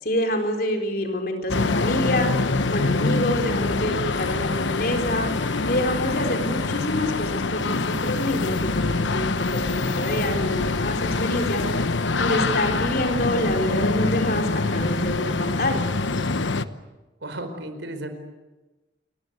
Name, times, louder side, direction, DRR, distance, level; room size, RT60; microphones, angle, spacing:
voice 1, 0.0-15.9, left 1 dB, 50° left, 4 dB, 4.1 m, -27 dB
sound 1, 1.5-16.6, left 3 dB, 85° left, 1.0 m, -25 dB
voice 2, 17.2-18.1, right 1 dB, 85° right, 8 dB, 4.7 m, -34 dB
29.5 x 22.0 x 8.2 m, 1.1 s
head